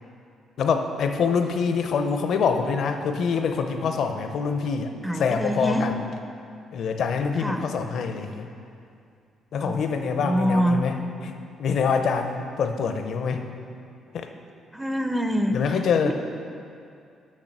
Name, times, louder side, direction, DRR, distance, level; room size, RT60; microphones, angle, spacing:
voice 1, 0.6-5.9 6.7-8.5 9.5-11.0 11.2-11.3 11.6-13.4 14.1-14.3 15.5-16.1, left 5 dB, 70° left, 6 dB, 0.6 m, -25 dB
voice 2, 5.0-5.9 7.4-7.6 9.6-10.8 14.7-15.8 16.0-16.1, equal, 5° right, 6 dB, 0.5 m, -25 dB
6.6 x 5.9 x 5.9 m, 2.4 s
cardioid pair, 90°, 0 cm